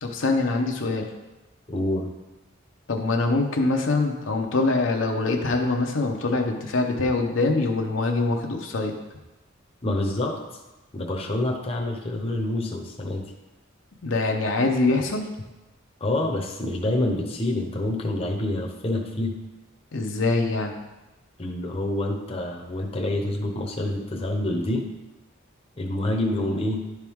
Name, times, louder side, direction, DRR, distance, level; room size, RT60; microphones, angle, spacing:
voice 1, 0.0-1.1 2.9-9.0 14.0-15.3 19.9-20.7, left 3 dB, 65° left, 2 dB, 0.7 m, -24 dB
voice 2, 1.7-2.1 9.8-10.4 10.9-13.3 16.0-19.3 21.4-24.9 25.8-26.8, left 1 dB, 30° left, 1 dB, 0.8 m, -27 dB
10.5 x 4.6 x 3.6 m, 1.0 s
head